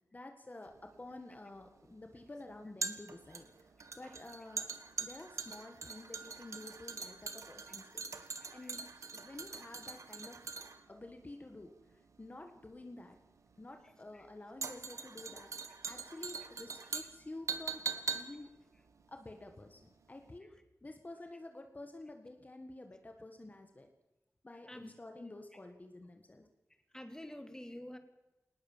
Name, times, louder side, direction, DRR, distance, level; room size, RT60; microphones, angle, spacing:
voice 1, 0.1-4.7 5.0-8.8 9.1-10.5 10.9-13.2 13.6-18.5 19.1-20.5 20.8-23.9 24.4-26.5, left 2 dB, 30° left, 5 dB, 1.7 m, -50 dB
sound 1, 0.7-19.9 20.2-20.3, right 5 dB, 80° right, 1.6 m, -43 dB
voice 2, 24.5-24.9 25.2-25.3 26.9-28.0, left 1 dB, 10° left, 7 dB, 2.3 m, -49 dB
19.5 x 19.5 x 7.4 m, 0.99 s
wide cardioid pair, 90°, 5 cm